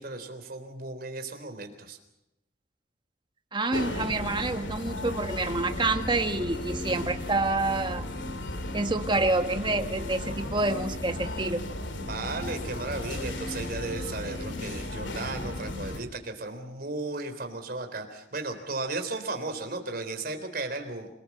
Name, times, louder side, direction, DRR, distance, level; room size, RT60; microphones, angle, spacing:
voice 1, 0.0-2.0 12.1-21.1, right 3 dB, 50° right, 6 dB, 3.8 m, -35 dB
voice 2, 3.5-8.0 8.7-11.6, right 2 dB, 25° right, 7 dB, 1.5 m, -28 dB
sound 1, 3.7-16.0, left 1 dB, 75° left, 2.6 m, -35 dB
27.5 x 20.0 x 7.3 m, 0.91 s
head